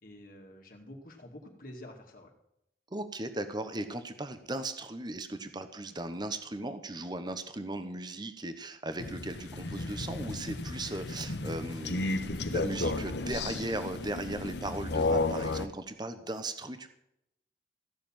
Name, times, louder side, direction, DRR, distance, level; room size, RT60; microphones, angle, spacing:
voice 1, 0.0-2.3, left 1 dB, 50° left, 1 dB, 2.3 m, -48 dB
voice 2, 2.9-16.9, right 2 dB, 25° right, 10 dB, 1.1 m, -37 dB
Crow, 9.0-15.7, left 2 dB, 75° left, 1.0 m, -33 dB
15.5 x 7.0 x 8.8 m, 0.80 s
head